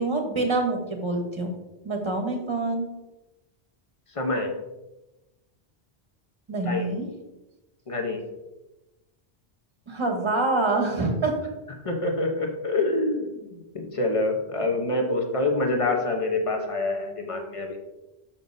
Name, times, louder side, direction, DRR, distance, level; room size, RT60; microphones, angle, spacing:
voice 1, 0.0-1.5 1.8-2.9 6.5-7.1 9.9-11.3, right 2 dB, 30° right, 3 dB, 1.1 m, -26 dB
voice 2, 4.1-4.6 6.6-7.0 7.9-8.2 11.8-17.8, left 2 dB, 30° left, 2 dB, 1.0 m, -26 dB
7.0 x 6.9 x 2.7 m, 1.0 s
omnidirectional pair, 1.1 m